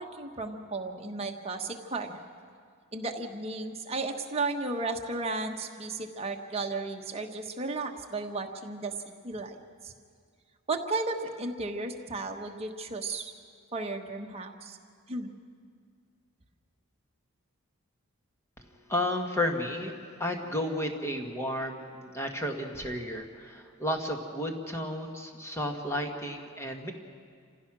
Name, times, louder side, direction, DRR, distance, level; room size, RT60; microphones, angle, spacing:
voice 1, 0.0-2.2 2.9-8.9 9.2-9.6 9.8-9.9 10.7-13.3 13.7-14.8 15.1-15.3, right 3 dB, 30° right, 3 dB, 1.3 m, -34 dB
voice 2, 18.9-19.9 20.2-26.9, left 1 dB, 15° left, 3 dB, 1.6 m, -32 dB
27.5 x 15.5 x 6.2 m, 2.1 s
head